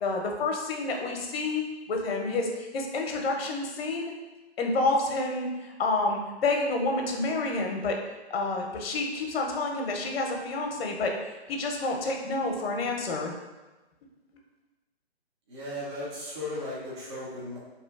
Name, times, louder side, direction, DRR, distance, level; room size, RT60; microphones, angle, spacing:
voice 1, 0.0-4.1 4.6-8.0 8.3-11.1 11.5-13.3, left 3 dB, 65° left, 2 dB, 0.6 m, -29 dB
voice 2, 15.5-17.6, left 1 dB, 30° right, -7 dB, 0.5 m, -36 dB
2.7 x 2.4 x 2.3 m, 1.1 s
hypercardioid pair, 155°, 32 cm